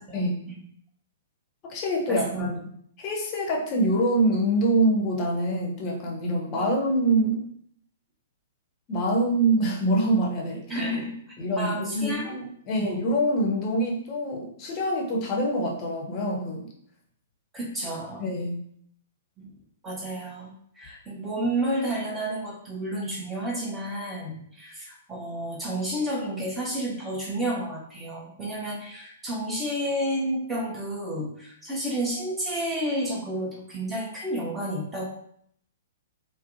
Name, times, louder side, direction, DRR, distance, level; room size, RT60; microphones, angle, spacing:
voice 1, 0.1-0.6 2.1-2.5 10.7-11.2 11.6-12.4 12.8-12.9 17.5-18.3 19.4-19.5 19.8-35.0, right 1 dB, 10° right, -4 dB, 0.7 m, -31 dB
voice 2, 1.6-2.5 3.0-7.4 8.9-10.9 11.4-16.7 18.2-18.6, right 1 dB, 30° left, -1 dB, 0.6 m, -25 dB
2.5 x 2.0 x 2.5 m, 0.67 s
figure-of-eight pair, 110°, 0 cm